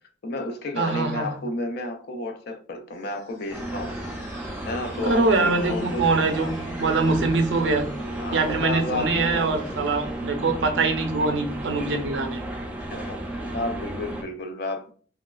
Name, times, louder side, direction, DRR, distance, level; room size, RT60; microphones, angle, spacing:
voice 1, 0.2-4.0 4.7-6.5 8.2-9.5 12.8-14.9, left 2 dB, 60° left, 0.4 m, -32 dB
voice 2, 0.8-1.4 5.0-7.9 8.3-12.4, right 3 dB, 70° right, 0.5 m, -23 dB
sound 1, 2.9-10.3, equal, 85° left, 0.8 m, -44 dB
sound 2, 3.5-14.2, right 1 dB, 10° right, 0.4 m, -33 dB
3.1 x 2.3 x 2.2 m
head